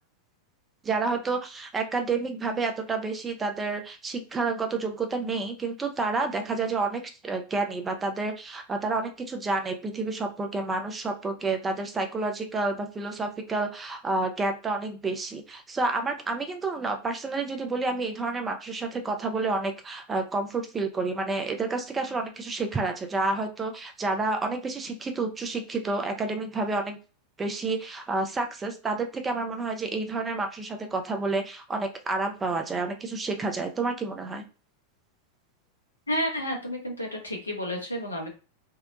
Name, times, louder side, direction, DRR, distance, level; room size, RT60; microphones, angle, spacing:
voice 1, 0.8-27.0 27.4-34.4, right 3 dB, 15° right, 5 dB, 0.4 m, -29 dB
voice 2, 36.1-38.3, equal, 80° left, 1 dB, 0.8 m, -31 dB
2.7 x 2.1 x 2.4 m, 0.33 s
figure-of-eight pair, 90°, 0 cm